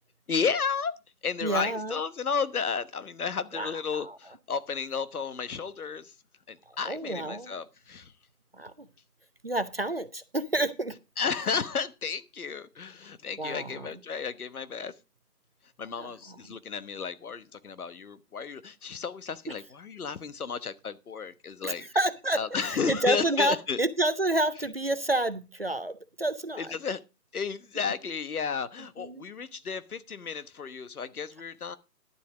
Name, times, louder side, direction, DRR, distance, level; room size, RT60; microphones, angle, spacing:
voice 1, 0.3-0.9 1.2-6.1 6.5-8.1 11.2-14.9 15.8-21.9 22.3-23.8 26.6-27.0 27.3-31.8, left 6 dB, 65° left, 1.2 m, -33 dB
voice 2, 1.4-2.0 3.5-4.2 6.7-7.5 8.5-8.9 9.4-11.0 13.4-13.9 16.0-16.1 16.5-16.6 21.6-26.7 29.0-29.2, right 1 dB, 40° right, 0.6 m, -29 dB
11.5 x 7.6 x 4.9 m
figure-of-eight pair, 165°, 48 cm